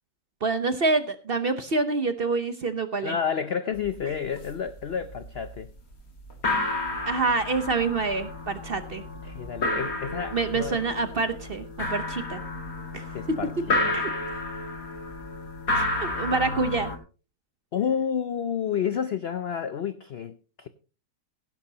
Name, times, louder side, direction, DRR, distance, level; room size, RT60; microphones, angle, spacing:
voice 1, 0.4-3.1 7.1-9.0 10.3-11.6 11.9-12.4 12.9-13.4 13.9-14.1 15.7-16.9, right 3 dB, 45° right, 0.8 m, -27 dB
voice 2, 3.0-5.7 9.2-10.8 13.1-13.9 14.3-14.4 17.7-20.7, left 7 dB, 80° left, 0.5 m, -30 dB
drum sound crash, 3.7-3.9 4.1-4.7 5.0-5.6 5.9-6.0 6.3-17.0, left 2 dB, 50° left, 2.7 m, -31 dB
16.5 x 11.0 x 2.8 m
omnidirectional pair, 1.9 m